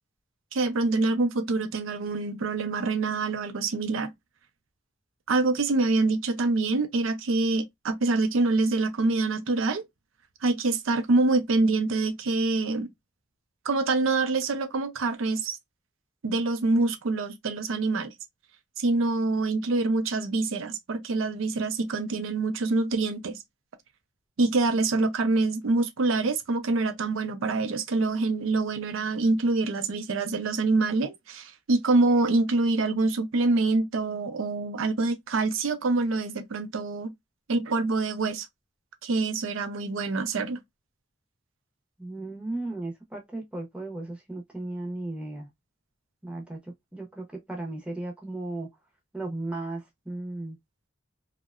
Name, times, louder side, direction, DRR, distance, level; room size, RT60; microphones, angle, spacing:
voice 1, 0.5-4.1 5.3-9.8 10.4-12.9 13.6-15.6 16.2-18.1 18.8-23.4 24.4-37.1 37.5-38.5 39.0-40.6, right 3 dB, 85° right, 0.5 m, -25 dB
voice 2, 42.0-45.5 46.2-48.7 49.1-50.6, right 2 dB, 5° right, 0.6 m, -35 dB
2.7 x 2.1 x 2.3 m
head